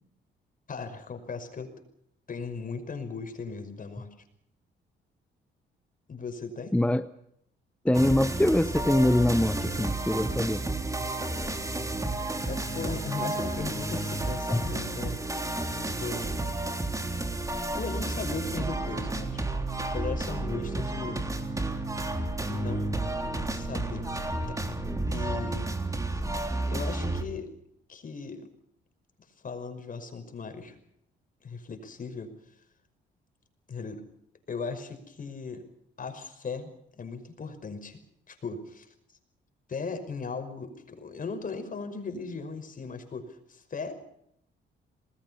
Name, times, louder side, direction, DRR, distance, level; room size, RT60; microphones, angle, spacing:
voice 1, 0.7-1.7 2.3-4.1 6.1-6.7 12.5-15.2 15.8-16.4 17.7-19.5 19.9-21.2 22.5-22.9 23.5-24.0 24.5-24.8 25.1-25.8 26.7-27.5 27.9-28.5 29.4-30.8 31.4-32.3 33.7-34.0 34.5-35.6 36.0-38.0 38.3-38.9 39.7-43.9, left 4 dB, 45° left, 8 dB, 5.7 m, -37 dB
voice 2, 6.7-7.1 7.8-10.6, left 1 dB, 5° left, 12 dB, 0.8 m, -24 dB
sound 1, 7.9-27.2, right 2 dB, 15° right, 3.5 m, -31 dB
28.5 x 20.0 x 5.6 m, 0.73 s
cardioid pair, 90°, 20 cm